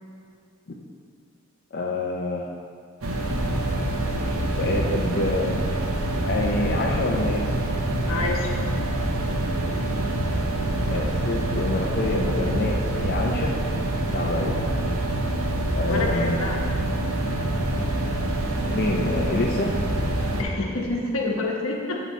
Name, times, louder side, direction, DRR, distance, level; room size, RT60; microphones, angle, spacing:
voice 1, 1.7-2.5 4.6-5.6 6.2-7.5 10.9-13.5 14.1-14.7 15.7-16.4 18.7-19.8, left 2 dB, 50° left, -2 dB, 0.6 m, -27 dB
sound 1, 3.0-20.4, right 1 dB, 75° right, 0.8 m, -26 dB
voice 2, 8.1-8.6 14.1-14.4 15.9-16.6 20.4-22.0, left 2 dB, 75° left, -1 dB, 1.2 m, -28 dB
8.2 x 5.8 x 4.2 m, 2.2 s
head